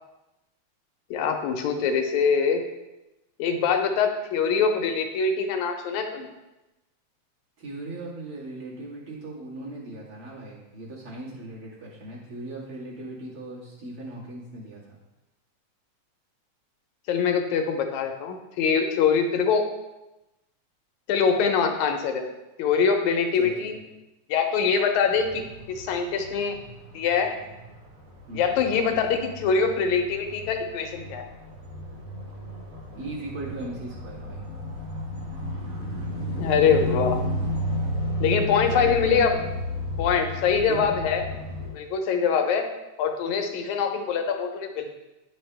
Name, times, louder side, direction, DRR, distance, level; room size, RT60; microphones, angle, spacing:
voice 1, 1.1-2.6 3.4-6.3 17.1-19.6 21.1-22.3 22.6-23.7 24.3-26.6 26.9-27.3 28.3-31.3 36.4-37.2 38.2-39.3 40.0-41.2 41.7-42.7 43.0-44.9, left 6 dB, 80° left, 5 dB, 2.1 m, -24 dB
voice 2, 7.6-15.0 23.3-23.7 28.3-28.6 32.9-34.5 38.7-39.6 40.7-40.9, right 2 dB, 45° right, -6 dB, 2.7 m, -38 dB
sound 1, 25.0-41.7, left 1 dB, 65° right, 0.8 m, -33 dB
10.5 x 5.6 x 3.3 m, 0.99 s
omnidirectional pair, 3.4 m